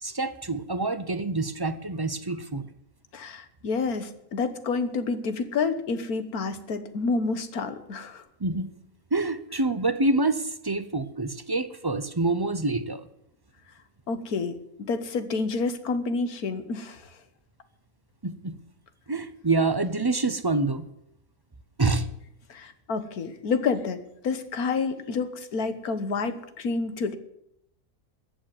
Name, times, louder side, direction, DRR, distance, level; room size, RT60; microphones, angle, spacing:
voice 1, 0.0-2.7 8.4-8.7 9.1-13.1 18.2-18.6 19.1-20.9 21.8-22.1, right 2 dB, 25° right, 12 dB, 0.5 m, -26 dB
voice 2, 3.1-8.2 14.1-17.1 22.5-27.2, left 4 dB, 85° left, 10 dB, 1.7 m, -29 dB
14.5 x 8.2 x 9.5 m, 0.79 s
omnidirectional pair, 1.5 m